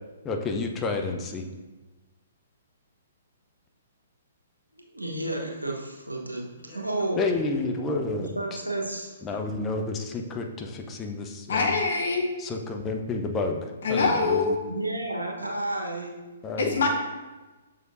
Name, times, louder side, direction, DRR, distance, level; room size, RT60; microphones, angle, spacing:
voice 1, 0.2-1.4 7.2-8.3 9.2-11.7 12.4-14.6 16.4-16.8, left 3 dB, 20° left, 3 dB, 0.6 m, -30 dB
voice 2, 4.9-6.5 6.7-7.2 8.4-9.2 14.7-16.2, right 2 dB, 85° right, 0 dB, 1.1 m, -31 dB
voice 3, 11.5-12.3 13.8-14.5 16.6-16.9, left 4 dB, 55° left, 1 dB, 1.2 m, -24 dB
6.6 x 6.3 x 2.6 m, 1.2 s
figure-of-eight pair, 120°, 0 cm